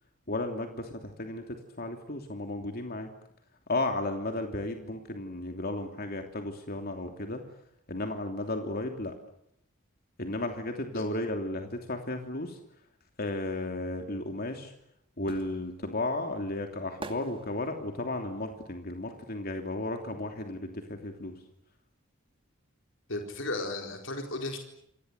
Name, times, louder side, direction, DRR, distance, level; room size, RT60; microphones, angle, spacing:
voice 1, 0.3-3.1 3.7-7.4 7.9-9.1 10.2-12.6 13.2-14.7 15.2-21.3, left 2 dB, 50° left, 4 dB, 3.0 m, -34 dB
sound 1, 14.4-20.2 20.5-22.1 22.4-22.5, right 2 dB, 25° right, 2.4 m, -48 dB
voice 2, 23.1-24.6, left 2 dB, 65° left, 3 dB, 4.4 m, -34 dB
29.5 x 24.5 x 8.2 m, 0.74 s
head